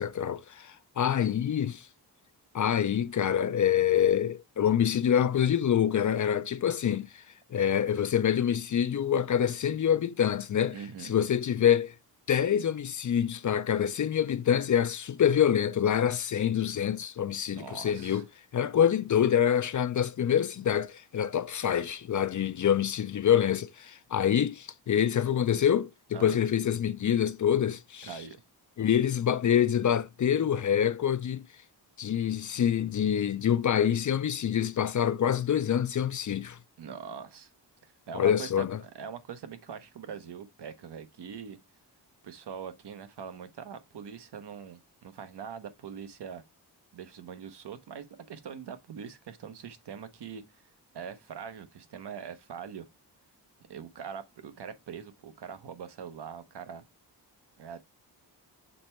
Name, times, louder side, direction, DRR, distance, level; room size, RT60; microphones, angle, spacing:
voice 1, 0.0-1.9 2.5-7.2 7.5-11.9 12.3-18.2 18.5-28.1 28.8-31.4 32.0-36.6 38.1-38.8, left 9 dB, 45° left, 0.5 m, -26 dB
voice 2, 10.7-11.1 17.5-18.2 26.1-26.4 28.0-28.4 36.8-37.5 37.8-41.6 42.2-46.4 46.9-50.4 50.9-52.9 53.7-56.8 57.6-57.9, right 7 dB, 70° right, 0.9 m, -42 dB
6.6 x 3.3 x 4.3 m
wide cardioid pair, 125°, 42 cm